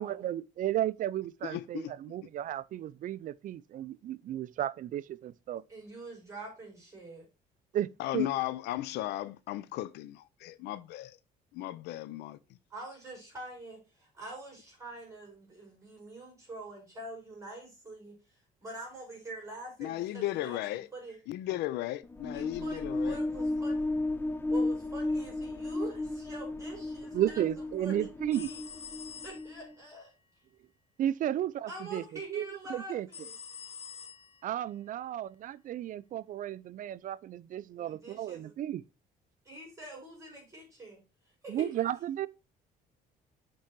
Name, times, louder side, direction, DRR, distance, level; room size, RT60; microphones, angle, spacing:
voice 1, 0.0-5.6 7.7-7.9 8.1-8.3 27.1-28.5 31.0-32.0 32.3-33.1 34.4-38.8 41.5-42.3, right 12 dB, 50° right, 0.4 m, -33 dB
voice 2, 1.4-2.2 8.0-11.2 11.5-12.4 19.8-20.9 21.3-23.2, left 15 dB, 80° left, 0.5 m, -36 dB
voice 3, 5.7-7.2 12.7-18.1 18.6-21.2 22.3-23.9 24.5-27.4 27.8-28.6 29.2-30.1 31.7-33.3 37.8-38.5 39.4-41.0 41.4-41.7, right 2 dB, 20° right, 4.6 m, -45 dB
sound 1, 22.0-29.7, left 2 dB, 15° left, 0.5 m, -34 dB
sound 2, 28.3-29.8 33.1-34.6, left 7 dB, 35° left, 0.8 m, -46 dB
7.4 x 4.6 x 4.5 m
cardioid pair, 110°, 17 cm